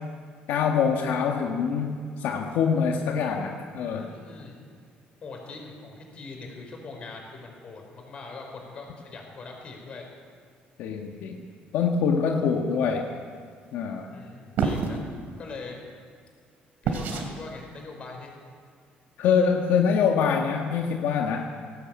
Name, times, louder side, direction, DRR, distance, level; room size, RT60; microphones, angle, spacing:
voice 1, 0.5-4.1 10.8-11.4 11.7-13.1 13.7-14.1 19.2-21.5, left 6 dB, 70° left, 1 dB, 1.7 m, -24 dB
voice 2, 3.9-4.5 5.2-10.1 14.1-15.0 15.4-15.8 16.8-18.3, left 3 dB, 35° left, 2 dB, 4.7 m, -42 dB
sound 1, 14.6-15.0 16.8-17.3, right 5 dB, 60° right, 3.0 m, -26 dB
19.0 x 17.5 x 8.8 m, 2.1 s
cardioid pair, 180°, 4 cm